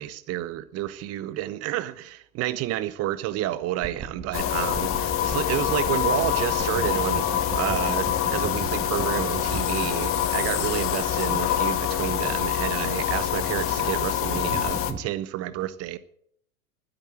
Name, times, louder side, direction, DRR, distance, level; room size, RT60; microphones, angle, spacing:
voice 1, 0.0-16.0, right 14 dB, 35° right, 1.2 m, -30 dB
sound 1, 3.8-15.0, right 5 dB, 15° right, 1.3 m, -39 dB
sound 2, 4.3-14.9, left 10 dB, 30° left, 1.3 m, -25 dB
12.0 x 10.5 x 7.9 m
figure-of-eight pair, 95°, 44 cm